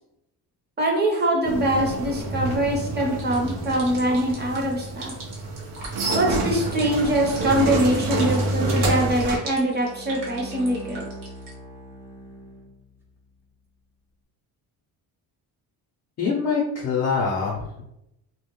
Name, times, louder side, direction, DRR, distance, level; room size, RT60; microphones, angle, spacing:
voice 1, 0.8-5.1 6.1-11.1, right 1 dB, 25° right, -1 dB, 0.7 m, -23 dB
sound 1, 1.5-9.4, right 2 dB, 80° right, 0.7 m, -27 dB
Drops falling into the water, 3.1-11.5, right 2 dB, 55° right, 1.1 m, -41 dB
Bowed string instrument, 9.5-13.0, right 1 dB, 5° right, 0.4 m, -41 dB
voice 2, 16.2-17.8, left 5 dB, 40° left, -3 dB, 0.5 m, -24 dB
2.3 x 2.1 x 3.0 m, 0.84 s
cardioid pair, 115°, 39 cm